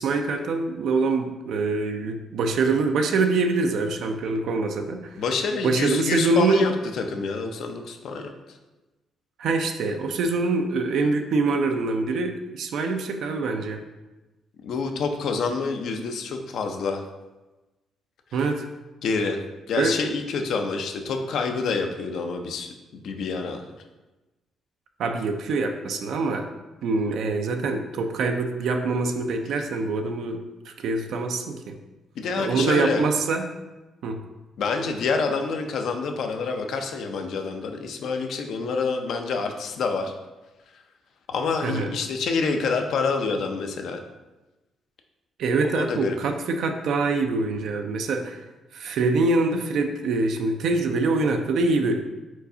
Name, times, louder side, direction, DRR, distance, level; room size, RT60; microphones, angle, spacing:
voice 1, 0.0-5.2 5.6-6.6 9.4-13.8 18.3-18.7 19.8-20.0 25.0-26.5 26.8-30.4 30.7-31.8 32.4-33.5 34.0-34.2 41.6-41.9 45.4-48.4 48.7-52.0, right 3 dB, 75° right, 5 dB, 0.4 m, -24 dB
voice 2, 5.2-8.3 14.6-17.0 19.0-19.4 19.7-23.6 32.2-33.0 34.6-40.1 41.3-44.0 45.7-46.2, left 4 dB, 70° left, 5 dB, 0.5 m, -27 dB
4.5 x 4.0 x 2.7 m, 1.1 s
cardioid pair, 90°, 0 cm